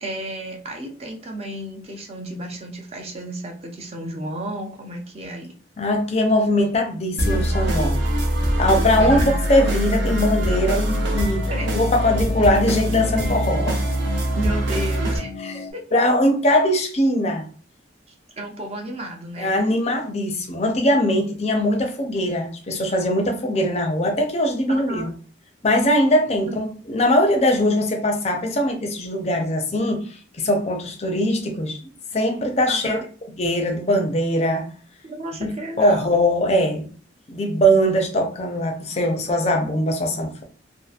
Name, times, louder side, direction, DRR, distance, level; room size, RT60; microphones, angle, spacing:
voice 1, 0.0-5.5 9.0-9.4 11.5-11.7 14.3-15.3 15.7-15.8 18.4-19.5 24.7-25.1 26.4-26.6 32.7-33.0 35.0-36.2, right 1 dB, 35° right, 0.5 m, -32 dB
voice 2, 5.8-8.0 8.6-11.5 11.7-13.8 15.4-15.6 15.9-17.5 19.4-25.1 25.6-30.1 30.4-31.8 32.1-33.0 33.4-34.7 35.4-35.5 35.8-36.9 37.3-40.4, equal, 35° left, 0.5 m, -21 dB
sound 1, 7.2-15.2, equal, 70° right, 0.7 m, -23 dB
sound 2, 8.9-15.7, left 4 dB, 80° left, 0.6 m, -36 dB
2.7 x 2.4 x 2.4 m
head